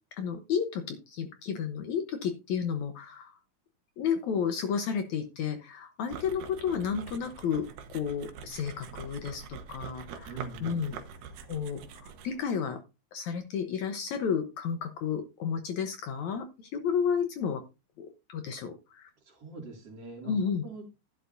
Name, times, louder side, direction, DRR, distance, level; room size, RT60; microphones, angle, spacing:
voice 1, 0.2-3.3 4.0-10.3 10.6-11.0 11.5-12.8 13.1-17.6 18.0-19.1 20.2-20.6, left 7 dB, 65° left, 8 dB, 2.0 m, -32 dB
sound 1, 6.1-12.4, right 6 dB, 75° right, 2.5 m, -45 dB
voice 2, 10.3-10.9 19.2-20.9, right 3 dB, 45° right, 1 dB, 3.3 m, -43 dB
11.5 x 10.5 x 2.6 m, 0.26 s
omnidirectional pair, 4.0 m